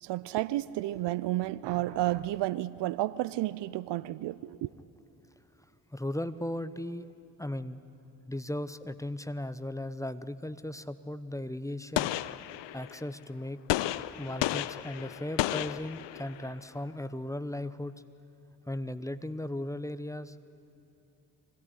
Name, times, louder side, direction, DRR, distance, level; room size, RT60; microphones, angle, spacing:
voice 1, 0.0-4.7, right 16 dB, 60° right, 0.6 m, -31 dB
voice 2, 5.9-7.1 7.4-7.8 8.3-12.1 12.7-13.6 14.2-18.0 18.7-20.4, left 1 dB, 5° left, 0.9 m, -37 dB
Gunshot gunfire, 12.0-13.0 13.7-16.5, left 15 dB, 65° left, 0.7 m, -32 dB
24.0 x 17.5 x 9.9 m
hypercardioid pair, 40°, 47 cm